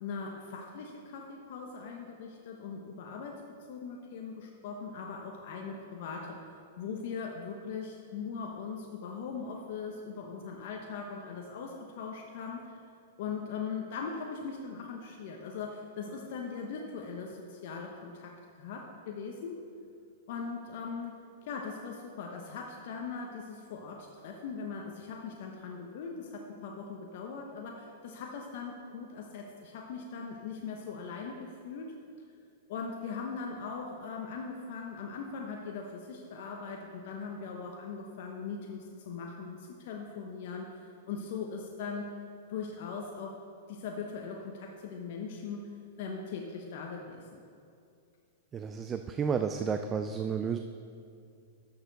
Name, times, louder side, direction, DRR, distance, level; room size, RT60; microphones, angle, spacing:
voice 1, 0.0-3.4 3.7-6.4 6.8-12.8 13.2-18.3 18.6-19.6 20.3-21.1 21.4-31.9 32.7-42.1 42.5-43.4 43.7-45.7 46.0-47.4, left 5 dB, 60° left, 1 dB, 1.0 m, -40 dB
voice 2, 48.5-50.6, right 6 dB, 20° right, 7 dB, 0.4 m, -31 dB
12.5 x 6.7 x 4.0 m, 2.4 s
hypercardioid pair, 130°, 0 cm